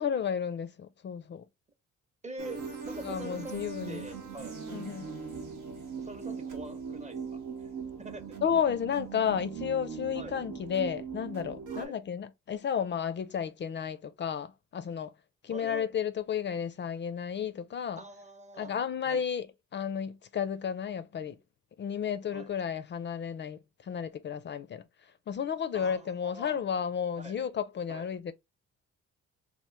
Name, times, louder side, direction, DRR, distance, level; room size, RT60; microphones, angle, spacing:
voice 1, 0.0-1.4 3.0-4.0 4.7-5.1 8.4-15.1 15.4-18.0 18.6-19.5 19.7-21.4 21.8-28.3, left 8 dB, 40° left, 0.4 m, -32 dB
voice 2, 2.2-4.6 6.0-7.7 8.0-8.4 10.2-10.3 11.7-12.0 15.5-15.9 18.0-18.7 19.1-19.2 22.3-22.5 25.7-26.6 27.2-27.4 27.9-28.1, right 2 dB, 25° right, 0.7 m, -45 dB
sound 1, 2.4-11.9, right 5 dB, 90° right, 1.0 m, -40 dB
3.0 x 2.0 x 3.1 m
cardioid pair, 90°, 30 cm